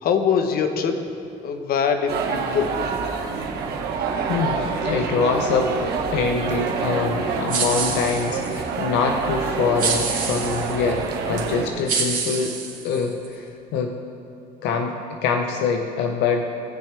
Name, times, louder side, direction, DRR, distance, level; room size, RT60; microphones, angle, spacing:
voice 1, 0.0-1.1 1.4-2.8, left 6 dB, 60° left, 7 dB, 0.9 m, -23 dB
sound 1, 2.1-11.7, right 5 dB, 75° right, 1.2 m, -27 dB
voice 2, 4.3-12.6 12.8-14.0 14.6-16.5, left 5 dB, 85° left, 4 dB, 0.7 m, -24 dB
sound 2, 7.5-8.6 9.8-10.7 11.4-11.5 11.9-13.3, right 5 dB, 50° right, 2.3 m, -27 dB
19.0 x 6.7 x 3.3 m, 2.7 s
cardioid pair, 110°, 17 cm